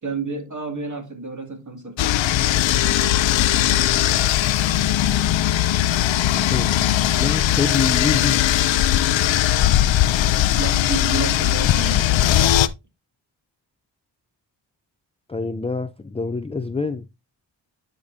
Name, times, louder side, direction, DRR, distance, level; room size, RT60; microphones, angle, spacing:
voice 1, 0.0-2.1 10.6-12.3, right 4 dB, 40° right, 2.3 m, -31 dB
sound 1, 2.0-12.7, left 12 dB, 75° left, 0.6 m, -19 dB
voice 2, 6.3-6.8 7.2-8.4 15.3-17.1, left 4 dB, 15° left, 0.4 m, -26 dB
9.6 x 5.1 x 2.6 m
cardioid pair, 80°, 46 cm